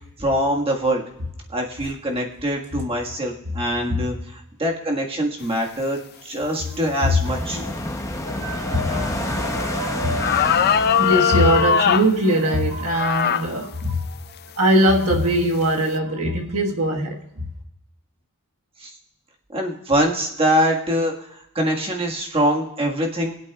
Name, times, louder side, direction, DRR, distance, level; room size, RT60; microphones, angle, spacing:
voice 1, 0.2-1.0 1.5-7.6 18.8-18.9 19.5-23.3, equal, 25° right, -1 dB, 1.7 m, -23 dB
sound 1, 7.2-12.4, left 1 dB, 15° left, 0.8 m, -29 dB
voice 2, 8.2-14.1 14.5-17.4, equal, 75° right, 1 dB, 1.6 m, -22 dB
sound 2, 9.6-9.7 10.2-12.1 12.9-13.5 14.1-14.2 14.9-15.2, left 8 dB, 45° left, 0.4 m, -20 dB
22.5 x 8.3 x 2.4 m, 0.84 s
head